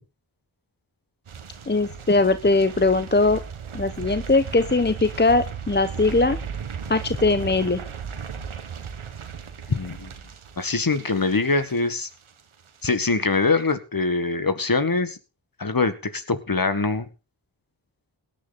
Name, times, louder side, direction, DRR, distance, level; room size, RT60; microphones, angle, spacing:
sound 1, 1.3-12.4 12.7-13.0 13.3-13.4, right 6 dB, 90° right, 1.6 m, -36 dB
voice 1, 1.7-3.4 3.7-6.4 6.9-7.8, left 3 dB, 20° left, 11 dB, 1.0 m, -20 dB
voice 2, 9.7-10.1 10.6-12.1 12.8-15.2 15.6-17.1, left 3 dB, 45° left, 11 dB, 1.9 m, -23 dB
17.5 x 10.5 x 4.2 m, 0.32 s
cardioid pair, 40°, 48 cm